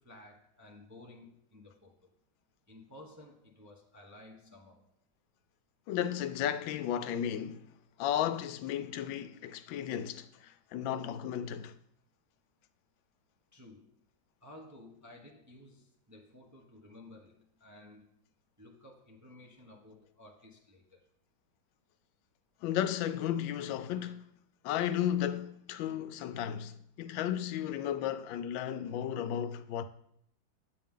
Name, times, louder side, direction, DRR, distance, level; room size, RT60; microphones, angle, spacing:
voice 1, 0.0-1.9 2.7-4.8 13.5-13.9 14.4-18.0 18.6-21.0, left 1 dB, 15° right, 0.6 m, -54 dB
voice 2, 5.9-7.7 8.0-11.8 22.6-24.2 24.6-29.8, left 10 dB, 85° left, 1.3 m, -34 dB
8.5 x 8.4 x 3.7 m
omnidirectional pair, 2.1 m